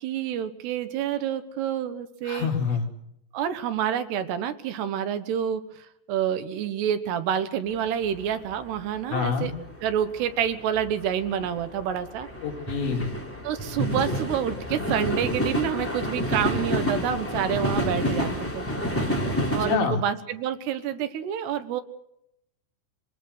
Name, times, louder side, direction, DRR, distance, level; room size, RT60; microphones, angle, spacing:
voice 1, 0.0-2.5 3.3-9.5 9.8-12.3 13.4-18.7 19.5-21.8, right 9 dB, 75° right, 10 dB, 3.2 m, -28 dB
voice 2, 2.2-2.9 9.1-9.5 12.4-13.1 19.4-20.0, left 6 dB, 85° left, 0 dB, 5.0 m, -27 dB
sound 1, 7.8-7.9 8.1-9.0 9.2-19.8, equal, 5° left, 2.4 m, -29 dB
25.0 x 19.5 x 6.5 m, 0.79 s
omnidirectional pair, 5.0 m